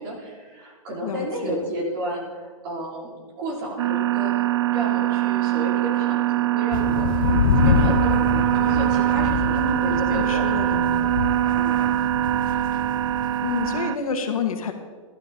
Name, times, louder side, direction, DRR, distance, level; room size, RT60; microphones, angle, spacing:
voice 1, 0.0-7.4 7.6-10.7 11.5-11.9, right 1 dB, 35° right, -5 dB, 4.2 m, -32 dB
voice 2, 1.0-1.6 9.5-11.0 13.4-14.7, left 6 dB, 80° left, 5 dB, 1.6 m, -29 dB
sound 1, 3.8-14.0, right 13 dB, 55° right, 0.5 m, -22 dB
sound 2, 6.7-13.8, left 8 dB, 35° left, 0.6 m, -26 dB
15.0 x 12.0 x 3.8 m, 1.5 s
hypercardioid pair, 170°, 18 cm